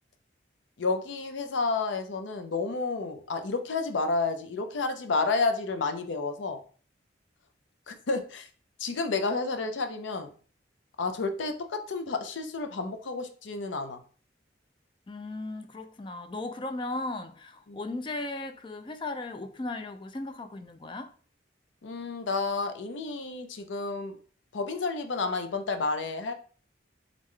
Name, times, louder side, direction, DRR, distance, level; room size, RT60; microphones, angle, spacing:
voice 1, 0.8-6.6 7.9-8.5 8.8-10.3 11.0-14.0 17.7-17.8 21.8-24.1 24.5-26.3, left 3 dB, 85° left, 0.5 m, -30 dB
voice 2, 15.1-21.1, left 2 dB, 25° left, 0.3 m, -36 dB
3.7 x 3.6 x 3.1 m
head